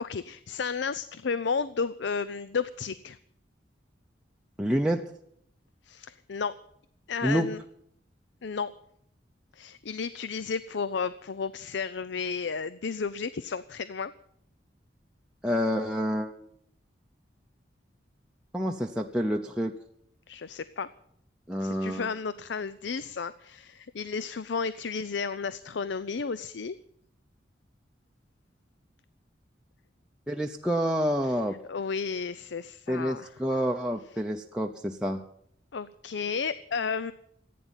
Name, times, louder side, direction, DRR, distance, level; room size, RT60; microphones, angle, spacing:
voice 1, 0.0-3.2 5.9-6.5 7.1-7.6 8.4-8.7 9.6-14.1 20.3-20.9 21.6-26.8 31.7-33.3 35.7-37.1, left 5 dB, 75° left, 15 dB, 0.5 m, -32 dB
voice 2, 4.6-5.0 7.2-7.5 15.4-16.5 18.5-19.8 21.5-22.1 30.3-31.6 32.9-35.2, equal, 5° right, 1 dB, 0.7 m, -28 dB
15.0 x 9.4 x 8.9 m, 0.71 s
head